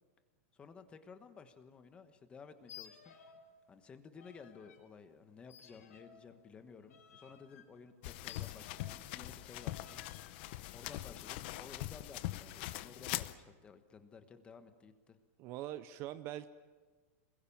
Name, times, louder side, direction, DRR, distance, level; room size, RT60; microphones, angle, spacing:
voice 1, 0.5-3.1 3.7-10.0 10.4-15.2, left 5 dB, 15° left, 9 dB, 1.2 m, -55 dB
sound 1, 2.6-3.5 3.8-4.8 5.5-9.1 9.6-10.3, left 8 dB, 85° left, 4.7 m, -57 dB
sound 2, 8.0-13.3, left 16 dB, 45° left, 0.8 m, -42 dB
voice 2, 15.4-16.5, right 13 dB, 30° right, 13 dB, 0.7 m, -43 dB
28.0 x 21.5 x 7.2 m, 1.4 s
supercardioid pair, 170°, 8 cm